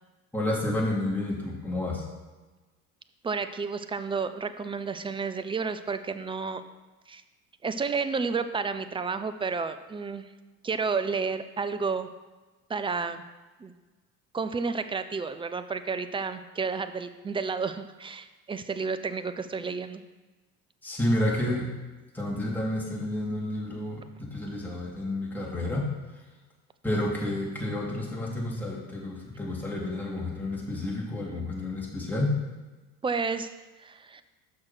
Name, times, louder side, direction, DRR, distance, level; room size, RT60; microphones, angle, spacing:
voice 1, 0.3-2.0 20.8-21.7 22.1-25.9 26.8-32.4, left 1 dB, 5° left, -4 dB, 2.7 m, -30 dB
voice 2, 3.2-6.6 7.1-7.2 7.6-10.3 10.6-12.1 12.7-13.2 13.6-13.7 14.3-20.0 33.0-33.5 33.8-34.2, right 5 dB, 15° right, 11 dB, 0.4 m, -31 dB
6.3 x 6.2 x 5.8 m, 1.3 s
hypercardioid pair, 70°, 44 cm